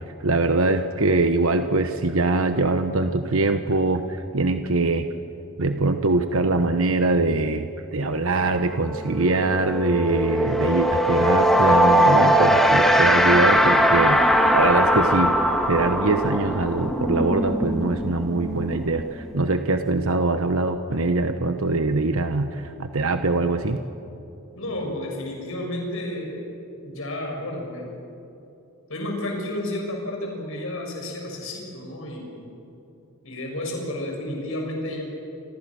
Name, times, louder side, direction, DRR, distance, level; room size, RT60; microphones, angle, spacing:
voice 1, 0.2-5.1 5.6-15.3 15.7-23.8, right 3 dB, 70° right, 7 dB, 1.1 m, -23 dB
sound 1, 8.4-8.6 8.9-19.4, equal, ahead, 1.8 m, -20 dB
voice 2, 24.6-26.4 26.8-28.0 28.9-32.5 33.2-35.0, left 1 dB, 65° left, 0 dB, 6.9 m, -31 dB
28.5 x 25.5 x 6.4 m, 2.7 s
head